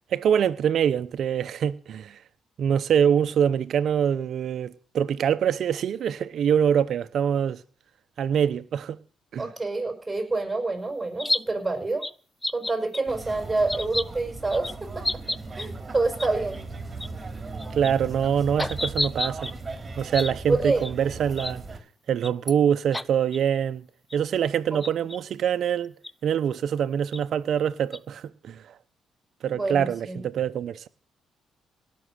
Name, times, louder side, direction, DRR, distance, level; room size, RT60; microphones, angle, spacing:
voice 1, 0.1-2.2 2.6-7.6 8.2-9.0 9.3-9.5 17.7-19.5 20.0-21.6 22.1-23.8 24.1-25.9 26.2-28.7 29.4-30.9, right 8 dB, 65° right, 0.9 m, -24 dB
voice 2, 9.4-12.1 12.5-15.0 15.5-16.6 20.5-20.9 24.7-24.8 29.5-30.2, right 3 dB, 10° right, 5.9 m, -27 dB
sound 1, 11.2-11.4 12.0-12.1 12.4-13.0 13.7-14.0 14.5-14.7 15.0-15.7 16.2-16.3 16.5-16.6 17.0-17.1 17.6-17.9 18.6-19.5 20.1-20.3 20.8-20.9 21.4-21.5 22.2-22.5 22.9-23.0 23.3-23.4 24.1-24.2 24.8-25.2 26.0-26.1 27.1-27.2 27.9-28.0, left 1 dB, 15° left, 0.6 m, -29 dB
sound 2, 13.1-21.8, right 3 dB, 25° right, 3.3 m, -38 dB
18.0 x 6.4 x 7.9 m
cardioid pair, 90°, 0 cm